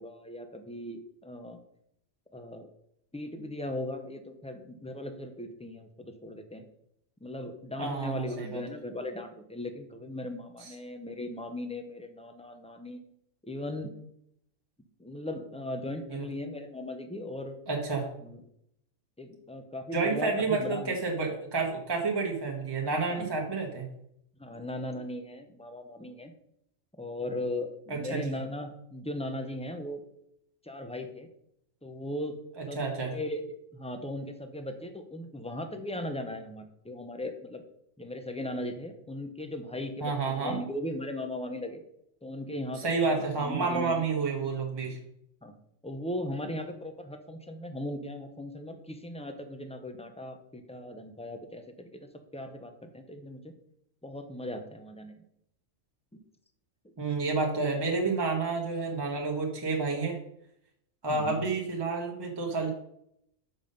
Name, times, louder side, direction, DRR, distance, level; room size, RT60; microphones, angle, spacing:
voice 1, 0.0-1.6 2.3-2.7 3.1-6.6 7.2-13.0 13.4-13.9 15.0-17.5 18.2-18.4 19.2-20.9 23.1-23.3 24.4-26.3 27.0-30.0 30.6-31.3 31.8-32.4 32.7-33.5 33.7-37.6 38.0-41.8 42.2-44.0 45.4-45.6 45.8-53.5 54.0-55.2 61.1-61.5, left 1 dB, 5° left, 6 dB, 0.5 m, -38 dB
voice 2, 7.8-8.6 16.1-16.2 17.7-18.1 19.9-23.9 27.9-28.3 32.6-33.1 40.0-40.6 42.8-45.0 57.0-60.2 61.0-62.7, right 4 dB, 20° right, 0 dB, 1.1 m, -30 dB
7.1 x 5.4 x 5.4 m, 0.75 s
omnidirectional pair, 1.4 m